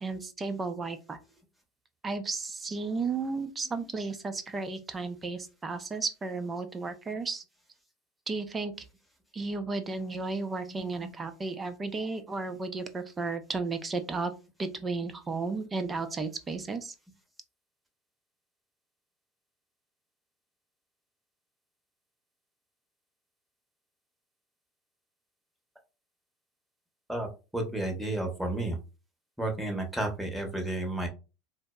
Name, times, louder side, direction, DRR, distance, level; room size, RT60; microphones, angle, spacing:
voice 1, 0.0-1.2 2.0-7.4 8.3-8.7 9.3-14.3 14.6-16.9, right 3 dB, 20° right, 8 dB, 0.5 m, -33 dB
voice 2, 10.7-11.1 27.1-27.3 27.5-28.8 29.4-31.1, right 1 dB, ahead, 2 dB, 0.9 m, -32 dB
4.1 x 2.0 x 2.2 m, 0.31 s
figure-of-eight pair, 80°, 0 cm